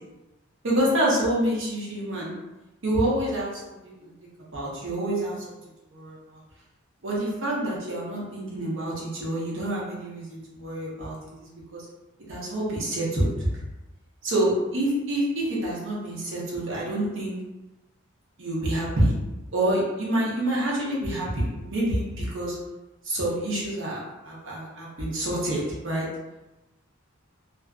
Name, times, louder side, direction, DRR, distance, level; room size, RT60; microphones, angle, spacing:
voice 1, 0.6-2.3 2.8-4.1 4.5-5.3 5.9-6.4 7.0-11.1 11.4-11.8 12.3-13.5 14.2-17.3 18.4-19.1 19.5-22.5 23.0-26.1, right 1 dB, 65° right, -5 dB, 0.8 m, -27 dB
2.4 x 2.2 x 2.4 m, 1.0 s
head